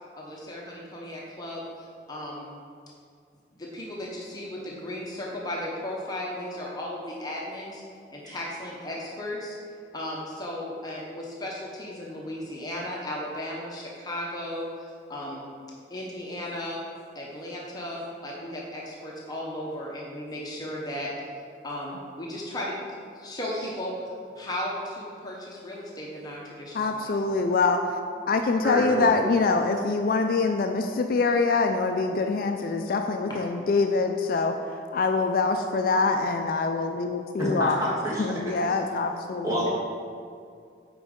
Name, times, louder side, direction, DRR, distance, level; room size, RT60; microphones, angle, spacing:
voice 1, 0.1-2.6 3.6-7.8 8.1-9.5 9.9-15.6 15.9-16.8 17.1-21.1 21.6-22.8 23.1-24.0 24.4-27.1 33.3-33.4, left 1 dB, 20° left, -4 dB, 0.8 m, -35 dB
voice 2, 26.7-27.8 28.3-34.6 34.9-37.8 38.2-39.6, left 4 dB, 50° left, 5 dB, 0.3 m, -24 dB
voice 3, 28.6-29.1 37.4-38.3 39.4-39.7, equal, 15° right, -7 dB, 1.6 m, -28 dB
8.0 x 5.2 x 3.7 m, 2.3 s
head